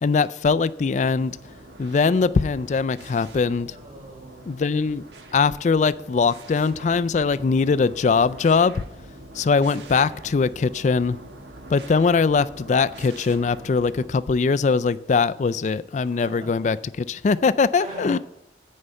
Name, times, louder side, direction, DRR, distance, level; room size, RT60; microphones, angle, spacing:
voice 1, 0.0-1.4 1.8-3.7 4.5-5.0 5.3-8.8 9.4-11.2 11.7-18.2, left 4 dB, 40° left, 16 dB, 0.3 m, -21 dB
sound 1, 1.0-14.1, right 1 dB, 85° right, 1.3 m, -44 dB
voice 2, 3.7-4.5 16.0-16.7 17.7-18.2, right 2 dB, 45° right, 1 dB, 3.3 m, -40 dB
9.7 x 5.5 x 8.1 m, 0.84 s
head